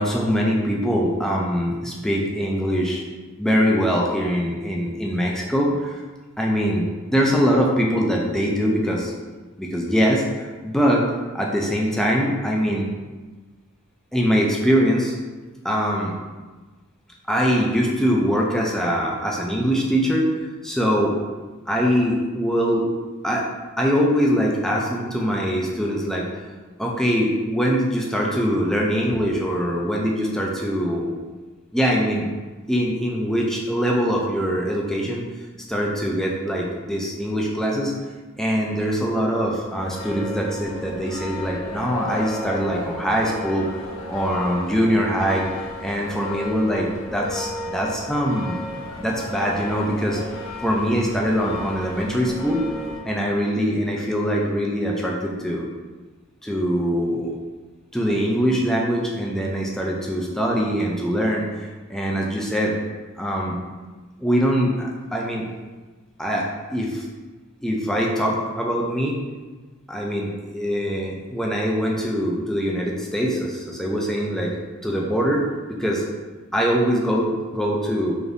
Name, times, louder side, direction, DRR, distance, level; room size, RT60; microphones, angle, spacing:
voice 1, 0.0-3.0 3.4-6.0 6.4-9.1 9.6-11.1 11.3-12.9 14.1-15.1 15.6-16.1 17.3-20.3 20.6-21.1 21.7-22.8 23.2-23.4 23.8-26.3 26.8-31.1 31.7-32.3 32.7-35.2 35.7-37.9 38.4-43.7 44.1-45.5 45.8-48.6 49.0-50.2 50.6-52.6 52.9-55.6 56.4-57.4 57.9-62.7 63.2-63.6 64.2-65.5 66.2-67.0 67.6-69.2 69.9-74.5 74.8-76.0 76.5-78.2, equal, ahead, -2 dB, 0.4 m, -23 dB
sound 1, 39.7-53.0, left 1 dB, 60° left, 0.6 m, -34 dB
4.9 x 2.7 x 2.6 m, 1.3 s
head